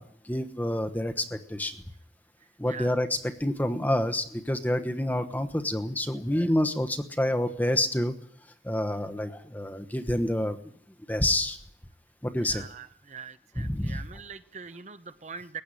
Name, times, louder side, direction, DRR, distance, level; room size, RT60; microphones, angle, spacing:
voice 1, 0.0-1.8 2.6-8.1 8.6-10.6 11.1-11.6 12.2-12.6 13.6-14.0, left 1 dB, 10° left, 8 dB, 1.1 m, -28 dB
voice 2, 2.4-2.9 12.4-15.6, right 5 dB, 40° right, 11 dB, 0.8 m, -43 dB
19.5 x 15.5 x 9.9 m, 0.66 s
head